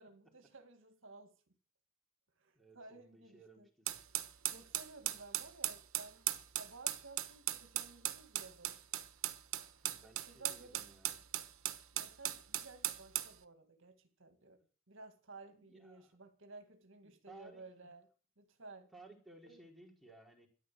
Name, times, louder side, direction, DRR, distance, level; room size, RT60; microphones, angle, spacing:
voice 1, 0.0-1.3 2.4-3.7 4.5-6.3 6.6-8.8 10.3-10.9 11.9-14.6 14.9-18.1 18.4-18.9 19.4-19.6, right 3 dB, 65° right, 2.0 m, -55 dB
voice 2, 2.5-4.0 9.8-11.2 15.5-16.2 17.0-17.6 18.9-20.5, right 2 dB, ahead, 4.3 m, -59 dB
sound 1, 3.9-13.3, right 13 dB, 80° right, 1.2 m, -38 dB
13.0 x 11.0 x 7.7 m
head